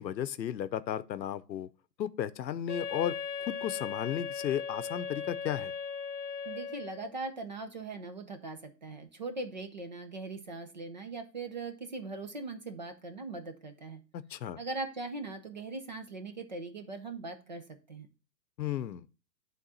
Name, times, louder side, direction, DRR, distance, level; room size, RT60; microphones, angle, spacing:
voice 1, 0.0-1.7 2.0-3.1 3.4-5.7 14.1-14.6 18.6-19.1, left 10 dB, 85° left, 0.7 m, -34 dB
Wind instrument woodwind instrument, 2.7-7.1, left 6 dB, 60° left, 0.9 m, -38 dB
voice 2, 6.4-14.0 14.6-18.1, right 3 dB, 30° right, 0.5 m, -40 dB
8.6 x 3.7 x 3.9 m
hypercardioid pair, 150°, 50 cm